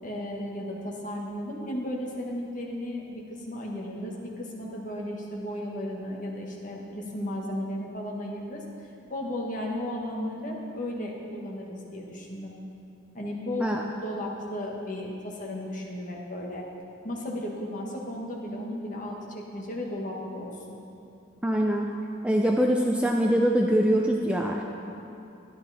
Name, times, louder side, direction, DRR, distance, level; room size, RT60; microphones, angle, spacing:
voice 1, 0.0-8.6 9.1-12.5 13.1-16.6 17.0-20.8, left 1 dB, 40° left, -2 dB, 1.5 m, -35 dB
voice 2, 21.4-21.9 22.2-24.6, equal, 5° right, 0 dB, 0.4 m, -23 dB
12.0 x 11.0 x 4.2 m, 2.7 s
head